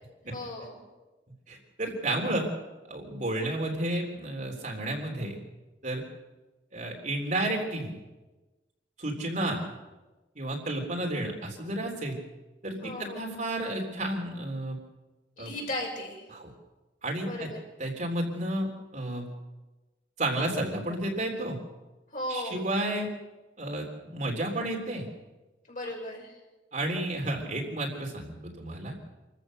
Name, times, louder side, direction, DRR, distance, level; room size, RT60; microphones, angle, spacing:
voice 1, 0.3-0.8 12.8-13.3 15.4-16.2 17.2-17.6 22.1-22.7 25.7-26.4, left 1 dB, 45° left, -2 dB, 6.6 m, -36 dB
voice 2, 1.5-2.5 2.9-5.4 5.8-6.0 6.7-8.0 9.0-9.7 10.4-12.2 12.6-14.8 15.4-15.5 16.3-16.5 17.0-17.5 17.8-18.7 18.9-19.3 20.2-21.6 22.3-23.1 23.6-25.1 26.7-28.9, right 1 dB, 45° right, 1 dB, 3.6 m, -31 dB
27.0 x 14.5 x 6.7 m, 1.1 s
head